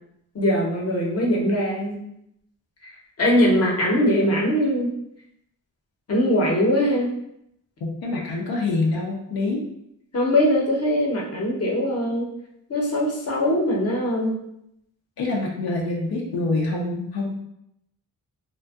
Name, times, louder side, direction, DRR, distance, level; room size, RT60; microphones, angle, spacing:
voice 1, 0.3-2.0 3.2-4.9 6.1-7.1 10.1-12.3 12.7-14.4, equal, 40° left, -2 dB, 0.7 m, -21 dB
voice 2, 7.8-9.6 15.2-17.4, left 2 dB, 85° left, -2 dB, 0.5 m, -26 dB
2.5 x 2.1 x 2.3 m, 0.78 s
cardioid pair, 60°, 36 cm